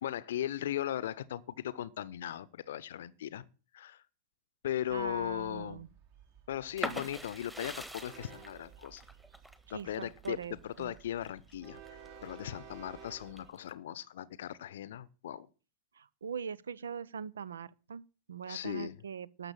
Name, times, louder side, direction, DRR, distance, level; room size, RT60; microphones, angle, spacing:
voice 1, 0.0-3.4 3.7-4.0 4.6-5.9 6.5-9.0 9.7-15.5 18.5-19.0, left 11 dB, 60° left, 0.7 m, -38 dB
Train, 4.9-13.5, right 7 dB, 50° right, 2.5 m, -55 dB
voice 2, 4.9-5.9 9.7-10.9 15.9-19.5, right 7 dB, 70° right, 0.5 m, -42 dB
sound 1, 6.8-12.4 12.8-13.7, right 1 dB, 5° right, 1.4 m, -43 dB
12.5 x 6.8 x 7.5 m
figure-of-eight pair, 90°, 0 cm